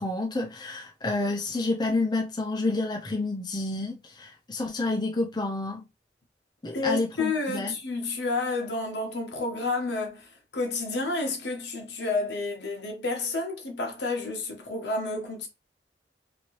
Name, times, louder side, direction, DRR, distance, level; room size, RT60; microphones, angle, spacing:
voice 1, 0.0-5.8 6.6-7.8, left 2 dB, 25° left, 0.5 m, -29 dB
voice 2, 6.7-15.5, left 3 dB, 70° left, 1.0 m, -30 dB
3.1 x 2.6 x 3.0 m
head